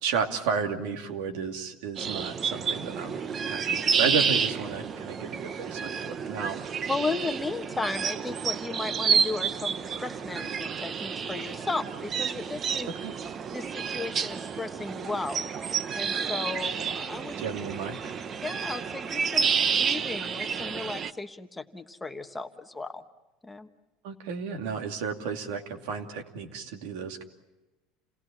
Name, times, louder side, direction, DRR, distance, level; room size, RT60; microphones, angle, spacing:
voice 1, 0.0-3.2 3.5-6.6 13.0-13.1 17.4-18.0 24.0-27.2, right 5 dB, 75° right, 4 dB, 2.6 m, -32 dB
sound 1, 2.0-21.1, right 6 dB, 30° right, 0.8 m, -30 dB
voice 2, 6.9-12.9 13.5-17.4 18.4-23.0 23.4-23.7, left 3 dB, 10° left, 6 dB, 1.3 m, -35 dB
28.5 x 17.5 x 8.7 m, 1.1 s
supercardioid pair, 125°, 0 cm